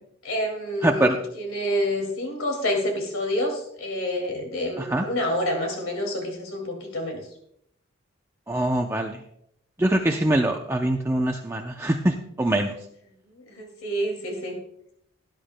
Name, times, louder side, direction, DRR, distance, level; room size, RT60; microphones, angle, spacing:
voice 1, 0.2-7.2 13.5-14.6, left 1 dB, 85° left, 2 dB, 2.4 m, -28 dB
voice 2, 0.8-1.2 4.8-5.1 8.5-9.2 9.8-12.7, right 1 dB, 10° right, 1 dB, 0.5 m, -23 dB
18.0 x 10.5 x 2.2 m, 0.73 s
head